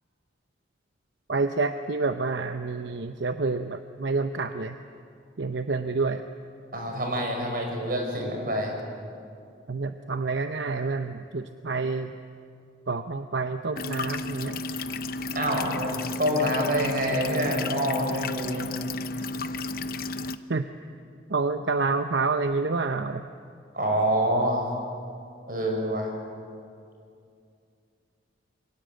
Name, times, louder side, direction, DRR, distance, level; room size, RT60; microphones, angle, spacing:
voice 1, 1.3-4.8 5.4-6.3 9.7-12.1 12.9-14.6 20.5-20.7 21.3-23.2, right 3 dB, 75° right, 8 dB, 0.8 m, -28 dB
voice 2, 6.7-8.7 15.3-15.9 16.2-18.7 23.7-24.6 25.5-26.1, equal, 50° right, 1 dB, 5.8 m, -26 dB
sound 1, 13.8-20.4, left 3 dB, 50° left, 0.8 m, -32 dB
28.0 x 23.5 x 7.9 m, 2.4 s
head